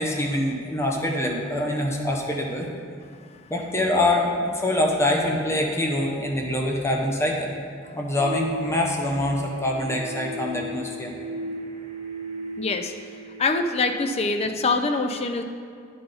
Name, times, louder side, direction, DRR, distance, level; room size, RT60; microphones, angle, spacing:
voice 1, 0.0-2.7 3.5-7.5 7.9-11.1, left 1 dB, 15° left, 0 dB, 0.8 m, -25 dB
sound 1, 8.1-13.9, right 1 dB, 20° right, 1.5 m, -36 dB
voice 2, 12.6-12.9 13.4-15.4, left 3 dB, 30° left, 6 dB, 0.4 m, -24 dB
10.0 x 4.0 x 5.1 m, 2.2 s
head